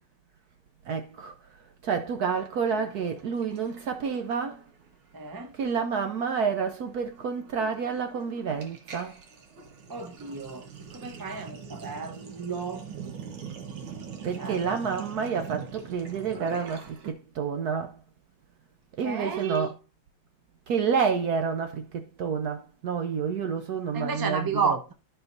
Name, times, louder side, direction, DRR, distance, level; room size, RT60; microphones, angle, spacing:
voice 1, 0.9-1.3 1.8-4.6 5.6-9.2 14.2-18.0 19.0-19.7 20.7-24.8, right 6 dB, 65° right, 1.0 m, -29 dB
Sink (filling or washing), 2.7-4.9 5.1-5.4 5.7-17.1, right 6 dB, 85° right, 2.2 m, -43 dB
voice 2, 5.1-5.5 9.9-12.9 14.4-14.6 19.0-19.7 23.9-24.9, right 5 dB, 25° right, 0.5 m, -32 dB
12.5 x 5.8 x 2.6 m
omnidirectional pair, 2.2 m